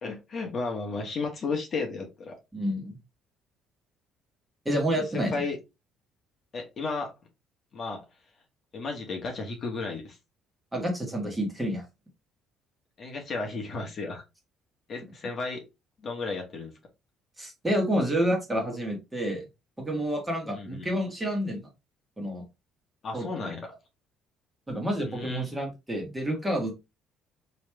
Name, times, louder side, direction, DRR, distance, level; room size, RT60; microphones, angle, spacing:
voice 1, 0.0-2.3 5.1-5.6 6.5-7.1 7.7-8.0 8.7-10.2 13.0-14.2 14.9-15.6 16.0-16.7 20.5-20.9 23.0-23.7 25.1-25.5, left 3 dB, 40° left, 2 dB, 1.2 m, -33 dB
voice 2, 2.5-3.0 4.6-5.4 10.7-11.8 17.4-19.4 19.8-21.7 22.2-22.4 23.1-23.5 24.7-26.7, equal, 10° right, 1 dB, 1.5 m, -29 dB
3.1 x 3.1 x 3.3 m, 0.24 s
cardioid pair, 110°, 0 cm